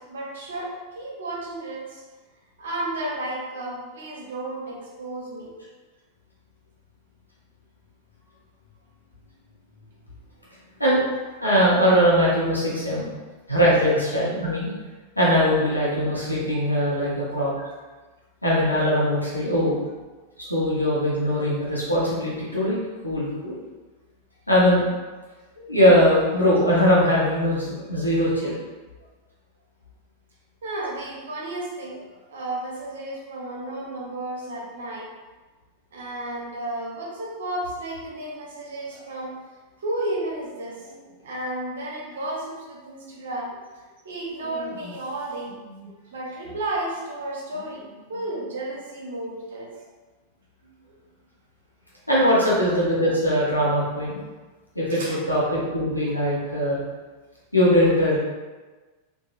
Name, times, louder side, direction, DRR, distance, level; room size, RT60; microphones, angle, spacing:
voice 1, 0.0-2.0 2.6-5.5 13.1-13.2 17.0-17.1 30.6-35.1 35.9-39.4 39.8-43.5 44.0-49.7 50.6-50.8 54.9-55.2, right 1 dB, 60° right, -3 dB, 0.6 m, -33 dB
voice 2, 11.4-13.1 13.5-14.7 15.2-17.5 18.4-19.8 20.4-23.5 24.5-24.8 25.6-28.5 52.1-54.2 54.7-56.8 57.5-58.2, equal, 90° left, -7 dB, 0.7 m, -21 dB
3.0 x 2.2 x 2.4 m, 1.3 s
figure-of-eight pair, 90°, 0 cm